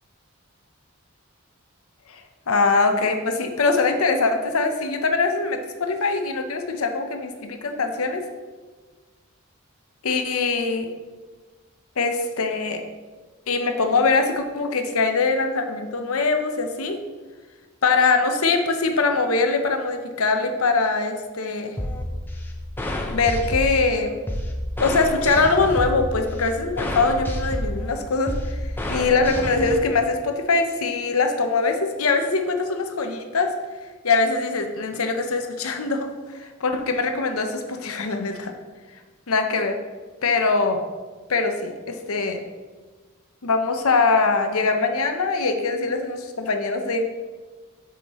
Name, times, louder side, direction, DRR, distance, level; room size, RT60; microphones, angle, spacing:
voice 1, 2.1-8.2 10.0-10.9 12.0-12.8 13.5-17.0 17.8-21.7 23.1-24.2 24.8-28.6 28.9-33.5 34.0-38.5 39.3-39.8 40.2-40.8 41.3-42.4 43.4-47.0, left 4 dB, 75° left, 6 dB, 0.8 m, -22 dB
sound 1, 21.8-29.8, left 1 dB, 10° left, 0.5 m, -29 dB
8.1 x 5.8 x 3.0 m, 1.3 s
head